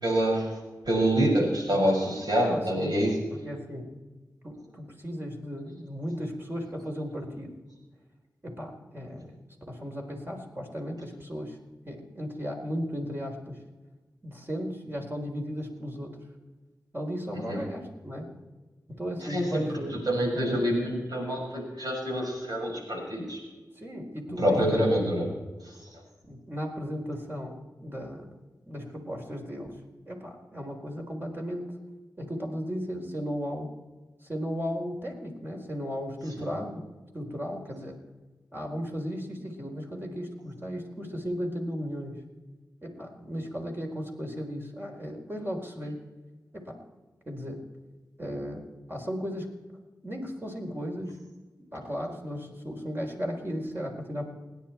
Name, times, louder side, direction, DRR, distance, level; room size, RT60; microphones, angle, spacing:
voice 1, 0.0-3.1 17.5-17.6 19.3-19.6 19.9-23.4 24.4-25.3 25.7-25.8 36.4-36.5, equal, 65° right, -1 dB, 6.3 m, -26 dB
voice 2, 2.5-2.9 3.3-3.9 4.4-7.5 8.4-9.3 9.7-11.6 11.9-13.6 14.2-16.2 16.9-18.3 18.9-19.9 20.5-20.6 23.8-24.9 26.3-28.3 28.7-29.8 30.1-31.7 32.2-33.7 34.3-36.8 37.1-38.0 38.5-42.2 42.8-46.0 46.5-46.8 47.3-47.6 48.2-48.6 48.9-49.5 50.0-51.2 51.7-54.2, equal, 30° right, 0 dB, 4.2 m, -35 dB
28.5 x 10.5 x 4.5 m, 1.3 s
cardioid pair, 40°, 7 cm